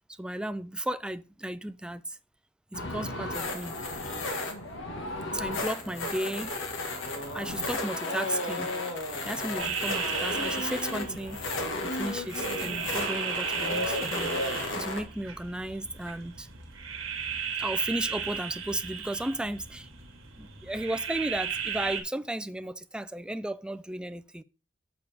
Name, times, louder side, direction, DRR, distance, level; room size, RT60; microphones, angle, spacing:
voice 1, 0.2-2.2 2.7-3.7 5.3-6.5 7.3-8.7 9.2-11.4 11.8-16.5 17.6-19.9 20.4-24.4, right 1 dB, 5° right, 0.3 m, -34 dB
sound 1, 2.7-15.0, left 2 dB, 65° left, 1.6 m, -33 dB
sound 2, 9.6-22.0, right 7 dB, 70° right, 1.7 m, -36 dB
7.0 x 6.7 x 3.4 m
head